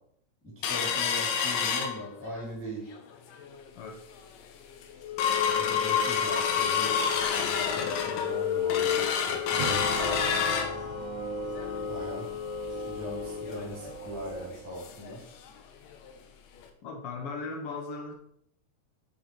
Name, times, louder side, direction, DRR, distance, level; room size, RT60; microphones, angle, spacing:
sound 1, 0.6-2.5 2.9-3.0 3.3-3.7 4.2-4.3 4.6-15.1 15.5-15.6 15.9-16.1 16.6-16.7, left 7 dB, 90° left, 2.5 m, -29 dB
voice 1, 0.6-3.0 5.5-9.6 11.8-12.3 12.8-15.3, equal, 5° left, -6 dB, 1.8 m, -40 dB
sound 2, 9.6-14.7, right 1 dB, 75° right, 2.5 m, -37 dB
voice 2, 16.8-18.1, left 3 dB, 65° left, 2 dB, 1.4 m, -37 dB
7.8 x 4.6 x 4.5 m, 0.70 s
omnidirectional pair, 3.8 m